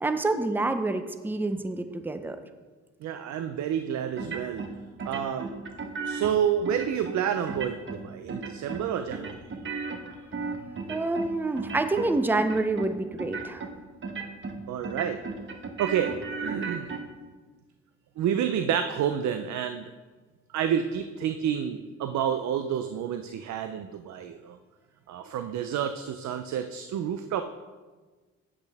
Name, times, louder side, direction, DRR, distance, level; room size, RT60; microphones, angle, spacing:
voice 1, 0.0-2.4 10.9-13.6, right 2 dB, 5° right, 9 dB, 0.6 m, -27 dB
voice 2, 3.0-4.7 5.0-5.5 6.0-9.4 14.7-15.2 15.8-16.1 16.4-17.0 18.2-19.8 20.5-24.6 25.1-27.4, right 9 dB, 70° right, 8 dB, 0.6 m, -29 dB
sound 1, 4.2-4.7 5.0-6.3 6.7-7.2 7.5-8.0 8.3-8.8 9.1-11.3 11.6-12.1 12.4-12.9 13.2-13.7 14.0-14.6 14.8-17.0, right 4 dB, 40° right, 1.1 m, -35 dB
8.4 x 8.1 x 3.5 m, 1.3 s
cardioid pair, 90°, 30 cm